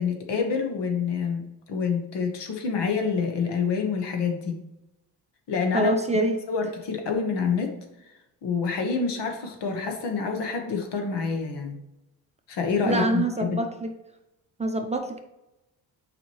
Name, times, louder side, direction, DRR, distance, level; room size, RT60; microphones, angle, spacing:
voice 1, 0.0-1.4 1.7-4.6 5.5-5.9 6.5-7.8 8.4-11.8 12.5-13.6, left 5 dB, 80° left, 4 dB, 1.4 m, -27 dB
voice 2, 5.7-6.3 12.9-13.9 14.6-15.2, right 1 dB, 15° right, 4 dB, 0.7 m, -25 dB
7.5 x 5.0 x 3.1 m, 0.92 s
cardioid pair, 135°, 41 cm